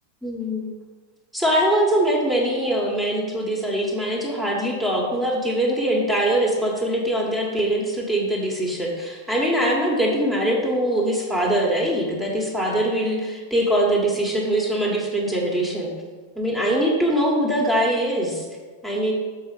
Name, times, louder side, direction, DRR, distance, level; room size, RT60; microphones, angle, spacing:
voice 1, 0.2-0.8 1.3-15.9 16.3-18.5 18.8-19.1, right 1 dB, 10° right, -2 dB, 1.3 m, -22 dB
6.3 x 4.3 x 5.5 m, 1.4 s
figure-of-eight pair, 90°, 0 cm